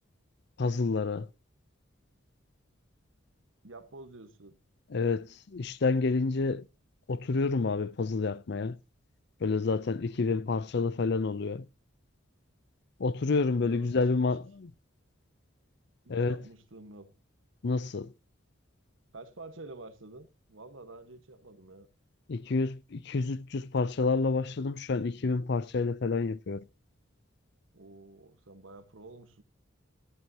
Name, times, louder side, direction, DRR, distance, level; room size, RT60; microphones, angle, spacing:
voice 1, 0.6-1.3 4.9-6.7 7.1-8.8 9.4-11.7 13.0-14.7 16.1-16.4 17.6-18.1 22.3-26.6, left 4 dB, 55° left, 0.5 m, -29 dB
voice 2, 3.6-4.5 10.1-10.4 13.6-14.3 16.0-17.1 19.1-21.9 27.7-29.4, right 2 dB, 75° right, 1.4 m, -49 dB
13.5 x 11.0 x 2.8 m
head